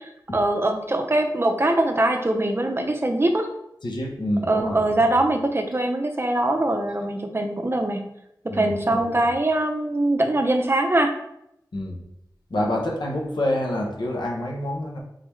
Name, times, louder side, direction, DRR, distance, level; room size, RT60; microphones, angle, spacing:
voice 1, 0.0-3.5 4.5-8.1 8.4-11.1, right 1 dB, 30° right, 4 dB, 0.5 m, -22 dB
voice 2, 3.8-4.8 8.5-9.2 11.7-12.0 12.5-15.0, left 1 dB, 90° left, -1 dB, 0.8 m, -27 dB
3.9 x 3.4 x 3.1 m, 0.79 s
wide cardioid pair, 65°, 8 cm